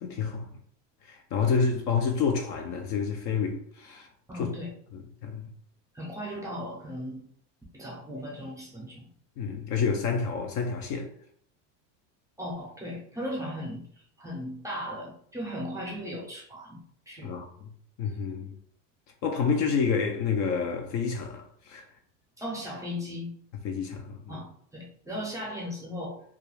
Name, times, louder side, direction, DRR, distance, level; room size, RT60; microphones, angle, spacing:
voice 1, 0.0-0.5 1.1-4.1 4.3-4.5 4.9-5.5 9.4-11.1 17.2-17.5 18.0-18.5 19.2-21.8 23.6-24.4, left 5 dB, 50° left, 0.4 m, -29 dB
voice 2, 4.3-4.7 5.9-7.3 7.7-9.1 12.4-13.8 14.2-17.4 22.4-23.3 24.3-26.2, equal, 10° right, 0.6 m, -37 dB
2.3 x 2.2 x 3.0 m
supercardioid pair, 125°, 39 cm